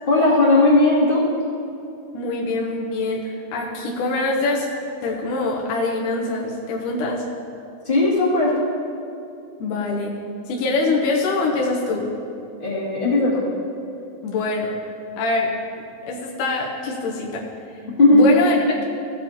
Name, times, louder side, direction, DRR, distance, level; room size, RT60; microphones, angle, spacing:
voice 1, 0.1-1.2 7.8-8.6 12.6-13.5 18.0-18.3, left 2 dB, 20° left, -8 dB, 2.0 m, -16 dB
voice 2, 2.1-4.7 5.0-7.2 9.6-10.2 10.5-12.1 14.2-14.8 15.2-15.5 16.1-17.4 18.1-18.6, left 3 dB, 75° left, -2 dB, 2.3 m, -24 dB
16.0 x 8.4 x 2.9 m, 2.7 s
omnidirectional pair, 4.1 m